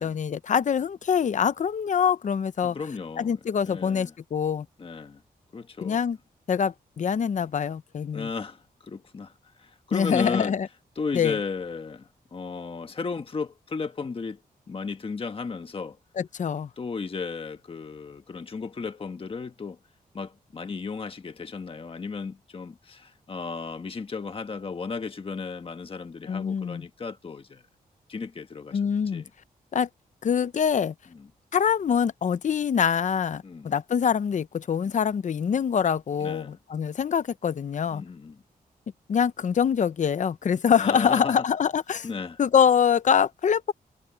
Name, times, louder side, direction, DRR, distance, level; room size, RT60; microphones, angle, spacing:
voice 1, 0.0-2.8 3.2-4.7 5.8-6.2 6.5-8.3 9.9-10.7 11.1-11.4 16.2-16.7 26.3-26.8 28.7-29.2 29.7-29.9 30.2-30.9 31.5-38.0 39.1-42.1 42.4-43.7, left 7 dB, 50° left, 0.7 m, -24 dB
voice 2, 2.6-3.4 3.7-4.1 4.8-5.2 5.5-6.0 8.1-10.5 11.0-14.4 14.7-16.0 16.8-19.8 20.1-27.6 28.1-29.3 33.4-33.7 36.2-36.6 37.9-38.4 40.8-41.4 42.0-42.4, left 4 dB, 35° left, 1.4 m, -34 dB
wide cardioid pair, 120°, 16 cm